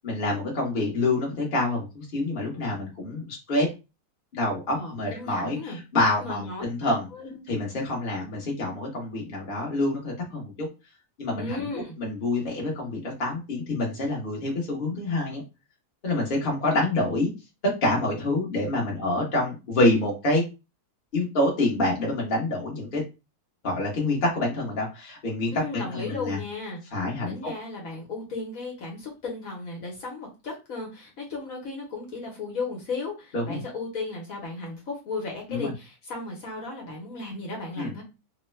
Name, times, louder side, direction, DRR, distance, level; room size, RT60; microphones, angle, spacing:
voice 1, 0.0-3.7 4.3-7.1 7.5-10.7 11.2-15.4 16.0-17.3 17.8-20.4 21.1-23.0 23.6-26.4 26.9-27.5 33.3-33.6 35.5-35.7 37.8-37.9, left 2 dB, 40° left, -2 dB, 1.1 m, -27 dB
voice 2, 4.7-5.8 6.2-7.4 11.4-12.0 25.5-26.8 27.3-38.0, left 3 dB, 60° left, -2 dB, 1.3 m, -35 dB
3.1 x 2.2 x 3.1 m, 0.27 s
omnidirectional pair, 1.7 m